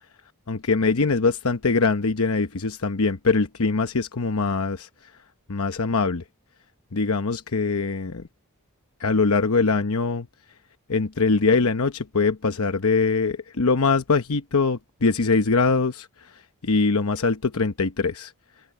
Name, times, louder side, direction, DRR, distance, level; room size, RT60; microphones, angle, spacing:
voice 1, 0.5-4.9 5.5-6.2 6.9-8.2 9.0-10.3 10.9-16.1 16.6-18.3, left 4 dB, 70° left, 0.9 m, -22 dB
open air
head